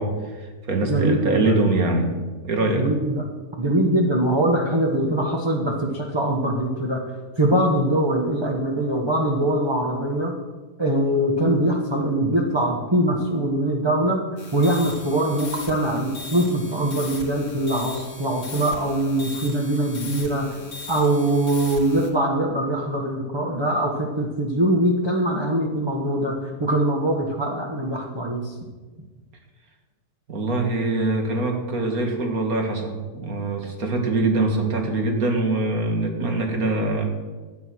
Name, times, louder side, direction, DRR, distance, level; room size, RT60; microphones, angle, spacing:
voice 1, 0.0-2.1 2.4-2.9 30.3-37.0, right 2 dB, 60° right, 3 dB, 2.4 m, -23 dB
voice 2, 0.9-1.5 2.8-3.2 3.6-7.0 7.4-10.3 10.8-14.2 14.5-20.5 20.9-28.5, right 1 dB, 20° right, -1 dB, 1.1 m, -22 dB
sound 1, 14.4-22.1, left 4 dB, 85° left, 2.7 m, -38 dB
12.5 x 9.5 x 6.3 m, 1.3 s
omnidirectional pair, 1.8 m